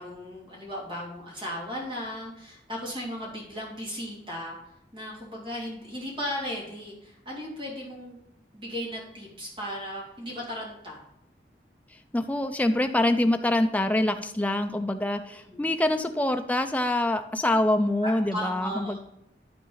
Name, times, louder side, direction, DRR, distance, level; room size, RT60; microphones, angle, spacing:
voice 1, 0.0-4.6 4.9-8.2 8.5-11.0 15.3-15.6 18.0-19.0, equal, 30° right, -3 dB, 2.7 m, -36 dB
voice 2, 12.1-19.0, left 1 dB, 10° left, 7 dB, 0.4 m, -25 dB
12.0 x 4.2 x 3.9 m, 0.81 s
head